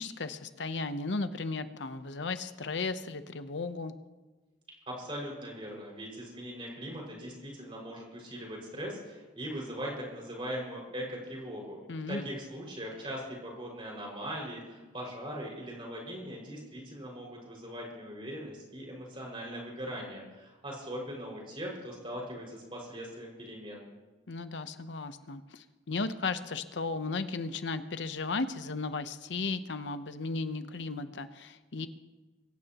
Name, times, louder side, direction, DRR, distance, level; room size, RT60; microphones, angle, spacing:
voice 1, 0.0-3.9 11.9-12.3 24.3-31.9, left 3 dB, 80° left, 10 dB, 0.8 m, -35 dB
voice 2, 4.9-11.8 12.1-23.9, equal, 30° right, -2 dB, 5.6 m, -40 dB
24.0 x 16.0 x 3.0 m, 1.2 s
head